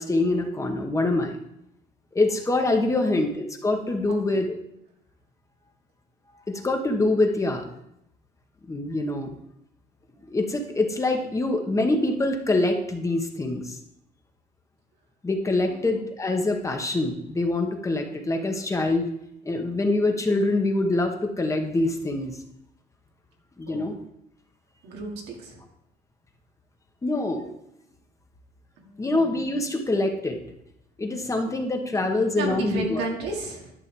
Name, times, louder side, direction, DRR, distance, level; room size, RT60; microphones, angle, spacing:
voice 1, 0.0-1.4 2.1-4.5 6.3-7.7 8.7-9.4 10.3-13.8 15.2-19.1 19.4-22.4 23.6-24.0 27.0-27.5 29.0-30.4 31.0-33.0, left 2 dB, 20° left, 4 dB, 1.0 m, -25 dB
voice 2, 4.1-4.5 15.7-15.9 23.7-23.9 24.8-25.6 28.8-29.4 32.3-33.7, right 3 dB, 85° right, 0 dB, 2.1 m, -33 dB
11.0 x 6.3 x 3.3 m, 0.80 s
cardioid pair, 110°, 17 cm